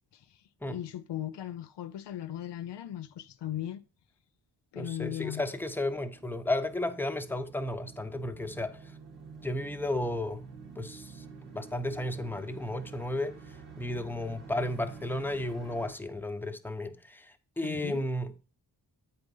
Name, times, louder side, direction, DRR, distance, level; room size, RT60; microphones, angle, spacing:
voice 1, 0.6-3.8 4.7-5.4 17.6-18.1, left 12 dB, 80° left, 0.6 m, -37 dB
voice 2, 4.7-8.9 9.4-10.4 10.8-13.3 13.8-18.3, left 1 dB, 5° left, 0.9 m, -33 dB
sound 1, 4.8-15.9, right 5 dB, 70° right, 1.7 m, -49 dB
8.0 x 4.0 x 5.4 m
cardioid pair, 45°, 41 cm